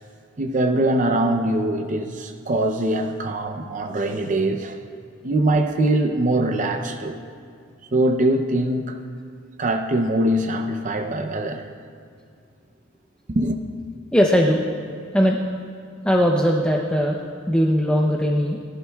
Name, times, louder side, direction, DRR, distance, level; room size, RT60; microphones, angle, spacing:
voice 1, 0.4-4.8 5.2-7.2 7.9-9.0 9.6-11.7 13.3-13.6, right 1 dB, 40° right, 5 dB, 0.6 m, -22 dB
voice 2, 14.1-14.6 15.1-15.4 16.0-17.2 17.5-18.6, equal, 5° left, -1 dB, 0.6 m, -19 dB
21.5 x 11.5 x 2.3 m, 2.4 s
head